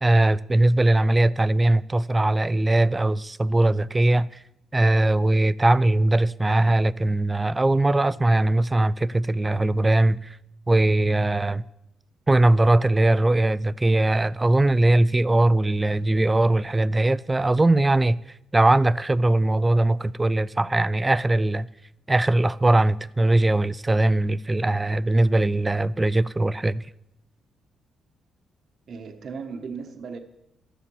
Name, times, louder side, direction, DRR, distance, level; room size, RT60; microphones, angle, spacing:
voice 1, 0.0-4.3 4.7-10.4 10.7-11.6 12.3-18.2 18.5-21.7 22.1-26.9, right 2 dB, 20° right, 0.4 m, -20 dB
voice 2, 28.9-30.2, right 5 dB, 55° right, 1.2 m, -36 dB
13.5 x 7.2 x 7.1 m
cardioid pair, 90°, 0 cm